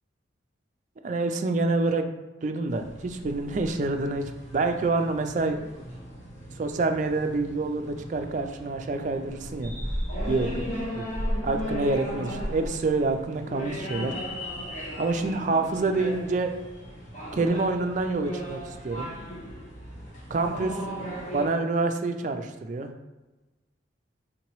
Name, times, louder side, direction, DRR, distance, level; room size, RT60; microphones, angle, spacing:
voice 1, 1.0-2.1 2.4-5.6 6.6-9.7 10.3-10.5 10.9-11.0 11.4-14.2 15.0-16.5 17.3-19.1 20.3-20.9 21.3-22.9, right 3 dB, 40° right, 6 dB, 0.3 m, -27 dB
sound 1, 2.7-21.5, equal, 40° left, 1.1 m, -36 dB
3.8 x 2.9 x 3.0 m, 1.1 s
head